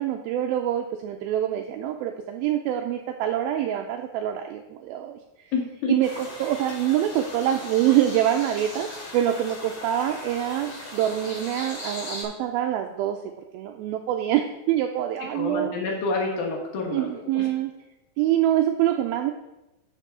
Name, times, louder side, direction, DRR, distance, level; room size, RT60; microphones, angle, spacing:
voice 1, 0.0-5.2 5.9-6.1 6.4-13.2 13.5-15.7 16.9-17.7 18.2-19.3, right 11 dB, 80° right, 4 dB, 2.3 m, -25 dB
voice 2, 5.5-6.0 15.3-17.5, left 4 dB, 70° left, 1 dB, 3.1 m, -28 dB
sound 1, 6.0-12.2, left 1 dB, 45° left, 3.9 m, -38 dB
12.0 x 6.0 x 3.7 m, 0.95 s
omnidirectional pair, 4.4 m